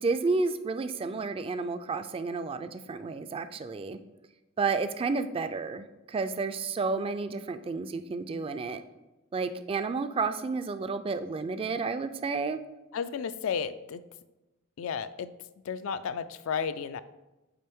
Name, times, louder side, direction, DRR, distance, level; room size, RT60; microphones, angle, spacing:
voice 1, 0.0-4.0 4.6-8.8 9.3-12.6, right 4 dB, 25° right, 10 dB, 0.3 m, -31 dB
voice 2, 12.9-14.0 14.8-15.3 15.7-17.0, left 6 dB, 70° left, 13 dB, 0.4 m, -33 dB
8.7 x 3.3 x 3.5 m, 1.0 s
head